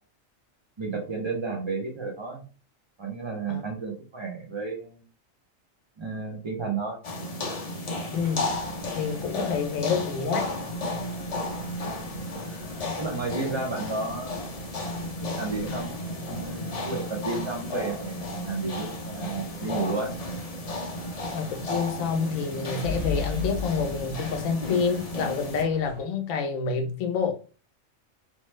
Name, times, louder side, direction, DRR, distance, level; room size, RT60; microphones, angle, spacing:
voice 1, 0.8-2.4 3.0-5.0 6.0-7.0 9.3-9.4 13.0-14.5 15.4-15.9 16.2-20.1, right 4 dB, 40° right, 0.4 m, -32 dB
sound 1, 7.0-25.6, left 1 dB, 50° left, 0.4 m, -34 dB
voice 2, 8.1-8.5 8.9-10.5 21.3-27.3, left 5 dB, 80° left, 1.0 m, -28 dB
sound 2, 8.1-26.0, left 3 dB, 85° right, 1.4 m, -41 dB
3.0 x 2.1 x 3.0 m
omnidirectional pair, 1.4 m